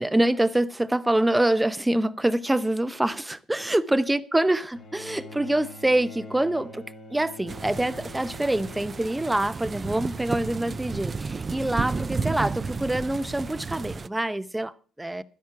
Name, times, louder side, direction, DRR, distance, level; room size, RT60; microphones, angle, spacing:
voice 1, 0.0-15.2, right 1 dB, 10° right, 0.8 m, -25 dB
Bowed string instrument, 4.7-10.2 11.3-11.4, left 2 dB, 70° left, 3.2 m, -45 dB
sound 1, 7.5-14.1, right 4 dB, 35° right, 0.6 m, -32 dB
12.0 x 10.5 x 5.8 m
supercardioid pair, 60°, 0 cm